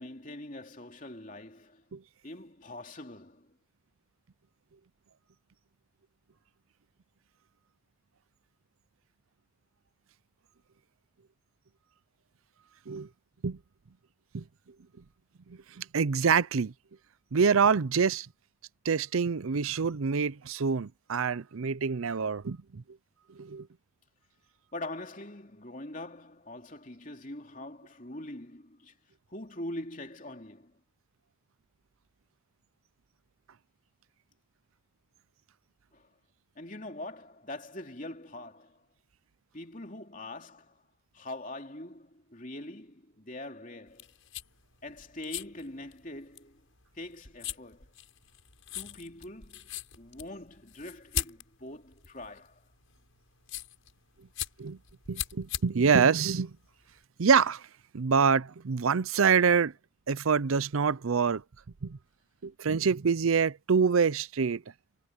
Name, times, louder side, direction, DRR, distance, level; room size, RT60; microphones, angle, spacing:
voice 1, 0.0-1.8 2.2-3.6 24.7-29.0 29.3-30.8 35.9-36.1 36.5-38.9 39.5-40.8 41.1-44.1 44.8-46.6 46.9-47.9 48.7-49.7 49.9-52.7, left 1 dB, 40° left, 3.1 m, -43 dB
voice 2, 15.8-16.7 17.3-18.3 18.8-22.8 23.4-23.7 54.6-54.8 55.1-56.5 57.2-57.6 57.9-59.7 60.1-61.4 61.8-62.0 62.4-64.6, right 5 dB, 80° right, 0.6 m, -26 dB
sound 1, 43.9-57.0, left 10 dB, 75° left, 6.5 m, -41 dB
head